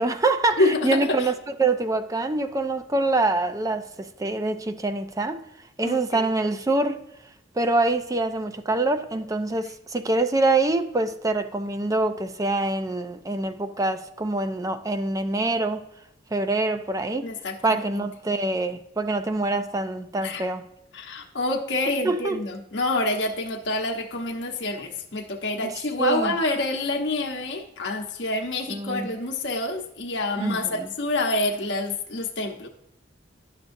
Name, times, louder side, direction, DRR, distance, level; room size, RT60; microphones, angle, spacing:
voice 1, 0.0-5.4 5.8-7.0 7.6-15.8 16.3-17.3 17.6-20.6 22.0-22.4 25.6-25.7 26.0-26.3 28.7-29.1 30.4-30.9, right 2 dB, 20° right, 0.4 m, -25 dB
voice 2, 0.6-1.3 5.8-6.3 17.2-18.0 20.2-20.4 20.9-32.7, left 2 dB, 85° left, 1.0 m, -27 dB
10.5 x 6.7 x 2.6 m
head